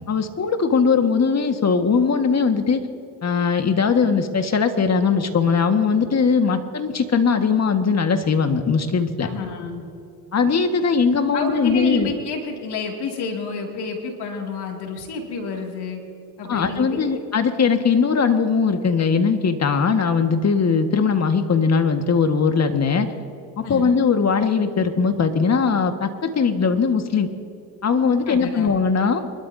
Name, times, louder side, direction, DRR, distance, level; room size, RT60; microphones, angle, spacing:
voice 1, 0.0-2.8 3.2-9.3 10.3-12.1 16.5-23.1 23.6-27.3 27.8-29.3, left 5 dB, 35° left, 6 dB, 1.7 m, -20 dB
voice 2, 9.2-9.9 11.3-16.0 16.4-17.2 23.6-24.0 28.3-28.7, left 4 dB, 65° left, 1 dB, 2.5 m, -29 dB
24.0 x 13.0 x 2.8 m, 2.7 s
supercardioid pair, 65°, 43 cm